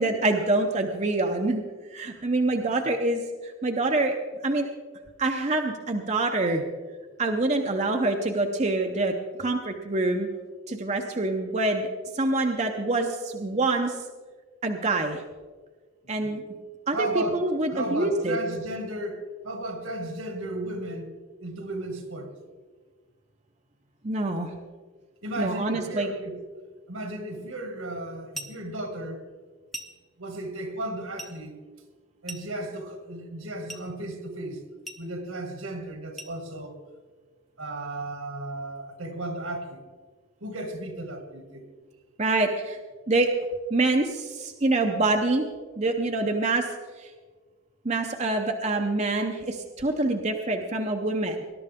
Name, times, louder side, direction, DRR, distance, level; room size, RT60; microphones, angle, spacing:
voice 1, 0.0-1.6 1.9-4.2 4.4-4.7 5.2-6.6 7.2-10.3 10.7-11.9 12.1-14.0 14.6-15.2 16.1-16.4 16.9-18.4 24.0-24.5 25.4-26.1 42.2-42.8 43.1-43.3 43.7-45.5 45.8-46.7 47.0-47.1 47.8-51.4, right 2 dB, 30° right, 0.8 m, -26 dB
voice 2, 16.0-16.3 16.9-21.1 21.4-22.3 25.2-26.4 26.9-29.2 30.2-31.6 32.2-34.6 35.0-36.8 37.6-39.8 40.4-41.6, right 1 dB, 80° right, 2.2 m, -34 dB
sound 1, 28.3-28.7 29.7-30.1 31.2-31.4 32.3-32.7 33.7-33.9 34.9-35.1 36.2-36.4, right 1 dB, ahead, 0.8 m, -40 dB
20.5 x 12.0 x 3.6 m
head